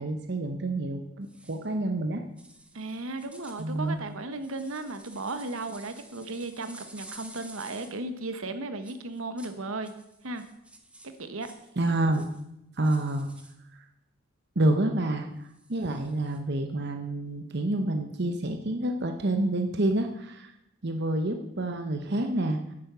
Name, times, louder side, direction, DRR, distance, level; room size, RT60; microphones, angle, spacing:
voice 1, 0.0-2.2 3.6-4.0 11.8-12.3 12.8-13.3 13.7-13.8 14.6-20.5 20.8-22.7, right 1 dB, 50° right, 5 dB, 0.9 m, -28 dB
sound 1, 1.2-1.7 2.4-8.0 8.8-9.6 9.8-11.7 12.1-12.4 12.8-13.5 15.5-16.4, right 2 dB, 5° right, 1.0 m, -51 dB
voice 2, 2.7-9.9 10.2-10.4 11.0-11.5, right 2 dB, 70° right, 9 dB, 1.1 m, -35 dB
10.5 x 8.8 x 6.8 m, 0.84 s
head